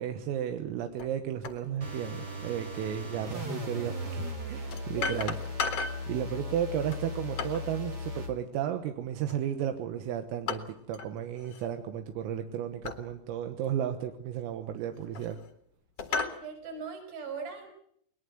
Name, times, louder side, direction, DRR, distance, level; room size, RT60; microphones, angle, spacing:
voice 1, 0.0-5.4 6.1-15.4, right 10 dB, 80° right, 7 dB, 3.8 m, -34 dB
sound 1, 1.0-1.1 1.4-1.6 3.4-3.5 4.7-6.1 6.9-7.7 9.3-9.7 10.5-11.1 11.4-11.7 12.8-13.0 13.6-13.7 14.7-15.5 16.0-16.4, left 5 dB, 75° left, 1.4 m, -35 dB
sound 2, 1.8-8.4, left 1 dB, 60° right, 1.0 m, -37 dB
voice 2, 5.0-5.3 16.1-17.7, right 4 dB, 45° right, 5 dB, 7.4 m, -40 dB
21.0 x 21.0 x 7.9 m, 0.70 s
omnidirectional pair, 6.0 m